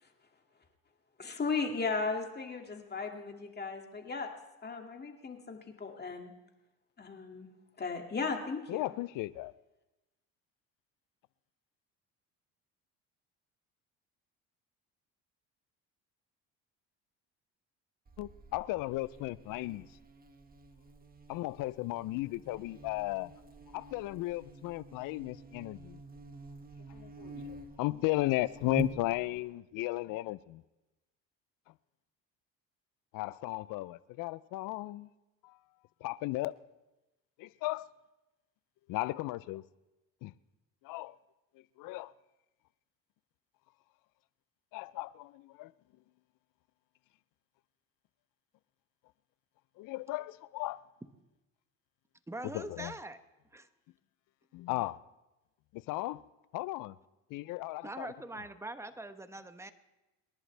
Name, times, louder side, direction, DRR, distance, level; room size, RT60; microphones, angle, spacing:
voice 1, 1.2-4.3 4.6-6.3 7.0-7.5 7.8-8.9, left 4 dB, 30° left, 2.3 m, -36 dB
voice 2, 8.7-9.5 18.2-19.9 21.3-23.3 23.7-26.0 26.9-27.5 27.8-30.6 33.1-35.1 35.4-35.6 36.0-36.6 37.4-37.9 38.9-39.6 40.2-40.3 40.8-41.2 41.8-42.1 44.7-45.7 49.8-50.8 52.5-52.9 54.5-55.0 55.7-56.2 56.5-57.0 57.3-58.1, left 19 dB, 70° left, 0.6 m, -35 dB
Buzz, 18.1-29.5, right 3 dB, 25° right, 1.6 m, -47 dB
voice 3, 52.3-53.2 53.5-53.7 57.8-59.7, right 2 dB, 10° right, 1.1 m, -43 dB
27.5 x 11.0 x 3.3 m
supercardioid pair, 80°, 34 cm